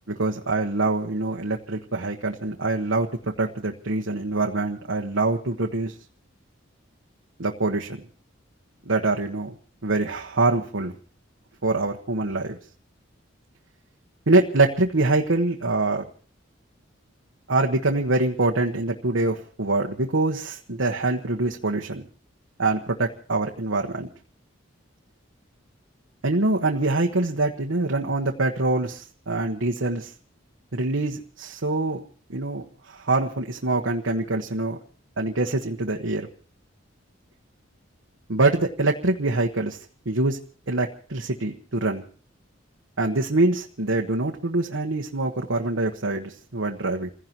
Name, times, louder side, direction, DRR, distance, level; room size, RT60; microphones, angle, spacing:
voice 1, 0.1-3.1 3.4-5.9 7.4-8.0 8.8-9.5 9.8-10.9 11.6-12.6 14.3-16.1 17.5-22.0 22.6-24.1 26.2-30.1 30.7-32.0 32.3-34.8 35.2-36.3 38.3-39.8 40.0-40.4 40.7-42.0 43.0-47.1, right 2 dB, 90° right, 1 dB, 1.3 m, -24 dB
29.0 x 16.5 x 3.0 m, 0.41 s
head